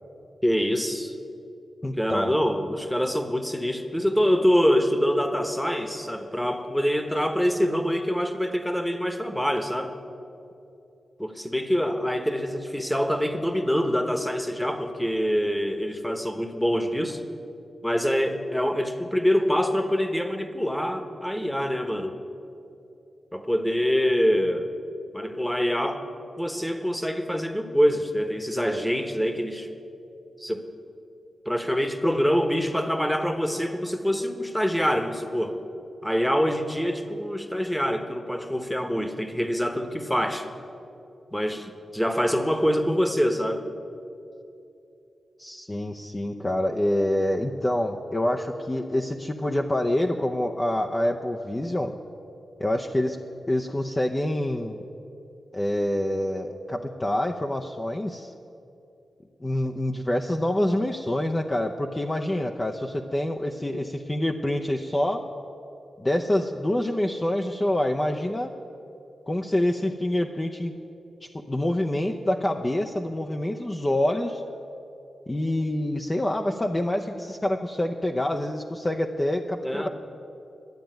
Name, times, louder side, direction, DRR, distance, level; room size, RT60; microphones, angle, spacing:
voice 1, 0.4-1.1 2.0-9.9 11.2-17.2 17.8-22.1 23.3-24.7 25.1-26.1 26.4-29.7 30.4-30.7 31.4-35.6 36.0-40.5 41.3-43.6 79.6-79.9, equal, 5° left, 8 dB, 1.1 m, -25 dB
voice 2, 1.8-2.3 45.4-52.0 52.6-53.2 53.5-54.9 55.5-58.3 59.4-65.3 66.0-68.5 69.3-70.7 71.2-74.4 75.3-79.9, left 1 dB, 20° left, 2 dB, 0.7 m, -26 dB
11.5 x 9.1 x 9.1 m, 2.7 s
cardioid pair, 75°, 0 cm